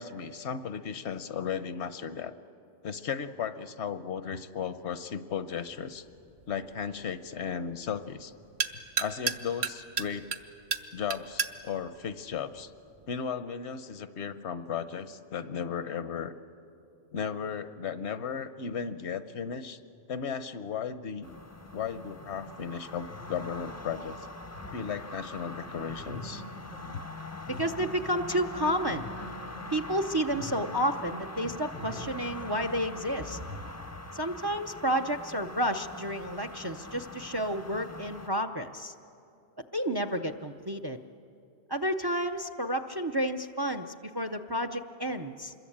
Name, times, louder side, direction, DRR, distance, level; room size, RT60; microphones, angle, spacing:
voice 1, 0.0-2.3 2.8-6.0 6.5-8.3 9.0-10.3 10.9-12.7 13.1-16.3 17.1-19.8 20.1-21.3 21.7-24.2 24.7-26.4 26.9-27.0, left 7 dB, 70° left, 12 dB, 1.1 m, -35 dB
sound 1, 5.5-13.1, right 5 dB, 45° right, 1.1 m, -37 dB
sound 2, 21.2-38.3, left 2 dB, 15° left, 0.7 m, -43 dB
sound 3, 21.9-31.5 31.7-33.8, left 1 dB, 80° right, 3.8 m, -46 dB
voice 2, 27.5-29.1 29.7-33.4 34.1-38.9 39.7-41.0 41.7-45.5, equal, 25° right, 8 dB, 0.5 m, -31 dB
26.0 x 22.0 x 8.7 m, 2.6 s
omnidirectional pair, 1.2 m